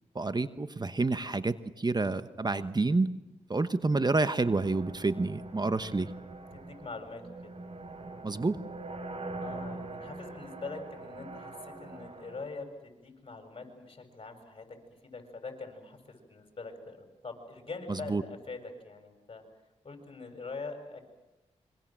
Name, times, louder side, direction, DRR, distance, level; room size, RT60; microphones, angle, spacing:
voice 1, 0.1-3.1 3.5-6.1 8.2-8.6 17.9-18.2, right 3 dB, 30° right, 12 dB, 1.1 m, -29 dB
sound 1, 4.4-12.5, right 2 dB, 50° right, 4.0 m, -43 dB
voice 2, 6.5-7.6 9.4-14.8 15.0-19.4 19.8-21.0, left 3 dB, 45° left, 5 dB, 7.0 m, -43 dB
26.5 x 24.0 x 7.6 m, 0.98 s
cardioid pair, 50°, 13 cm